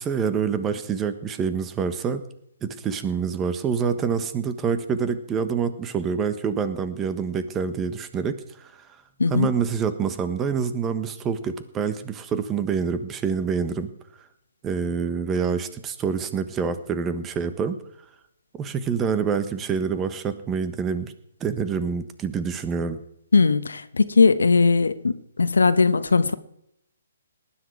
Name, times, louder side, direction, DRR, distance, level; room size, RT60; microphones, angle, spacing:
voice 1, 0.0-2.2 2.6-8.9 9.3-13.9 14.6-17.8 18.5-21.1 21.4-23.0, right 6 dB, 15° right, 1.3 m, -26 dB
voice 2, 23.3-26.3, left 4 dB, 75° left, 1.1 m, -19 dB
19.0 x 10.5 x 4.8 m
figure-of-eight pair, 135°, 0 cm